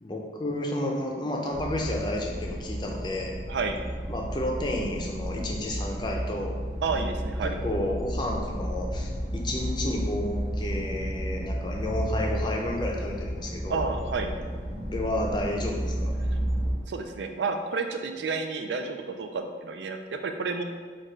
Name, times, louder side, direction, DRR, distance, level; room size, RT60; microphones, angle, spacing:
voice 1, 0.0-3.3 4.1-6.6 7.4-13.8 14.9-16.1, left 1 dB, 25° left, 0 dB, 0.5 m, -31 dB
sound 1, 1.5-16.7, equal, 65° right, 0.9 m, -32 dB
voice 2, 6.8-7.6 13.7-14.3 16.9-20.6, right 4 dB, 85° right, 5 dB, 0.4 m, -30 dB
4.6 x 2.3 x 4.5 m, 1.5 s
head